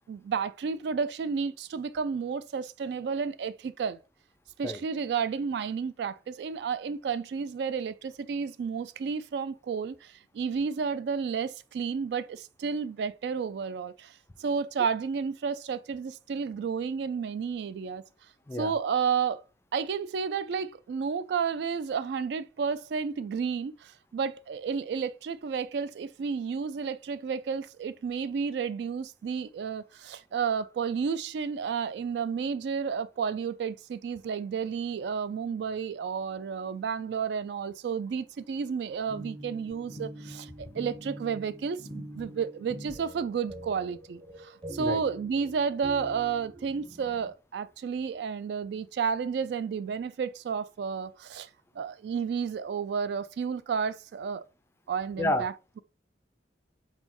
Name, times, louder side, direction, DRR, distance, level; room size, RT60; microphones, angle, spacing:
voice 1, 0.1-4.0 4.6-18.0 18.6-19.4 19.7-51.5 51.8-54.4 54.9-55.8, right 6 dB, 65° right, 0.3 m, -31 dB
voice 2, 4.6-4.8 18.5-18.7 40.6-40.7 44.8-45.0 55.2-55.5, left 1 dB, 15° left, 0.3 m, -30 dB
sound 1, 39.1-47.3, right 1 dB, 30° right, 0.8 m, -44 dB
4.1 x 3.9 x 2.9 m
head